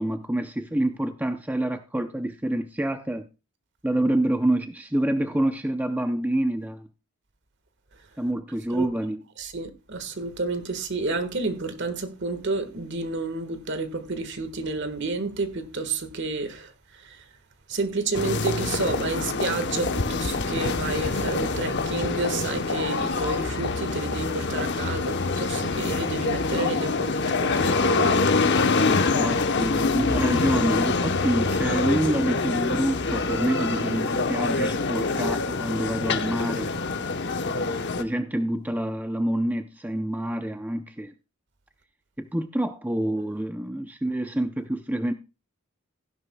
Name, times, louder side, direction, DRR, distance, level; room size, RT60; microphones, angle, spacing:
voice 1, 0.0-3.3 3.8-6.9 8.2-9.2 28.8-36.8 38.0-41.1 42.2-45.1, right 1 dB, 10° right, 0.5 m, -27 dB
voice 2, 9.4-16.7 17.7-28.2, right 3 dB, 55° right, 1.5 m, -30 dB
sound 1, 18.1-38.0, left 3 dB, 50° left, 0.9 m, -25 dB
15.5 x 11.0 x 2.2 m
head